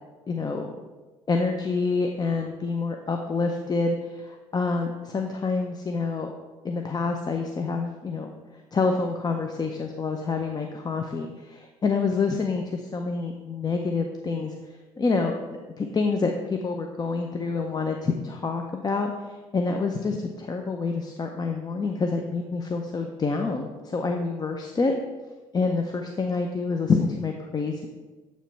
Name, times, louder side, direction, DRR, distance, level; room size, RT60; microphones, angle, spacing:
voice 1, 0.3-0.8 1.3-6.3 6.6-14.5 15.0-25.0 25.5-27.9, left 4 dB, 30° left, 4 dB, 0.6 m, -27 dB
8.2 x 3.1 x 4.4 m, 1.2 s
hypercardioid pair, 65°, 13 cm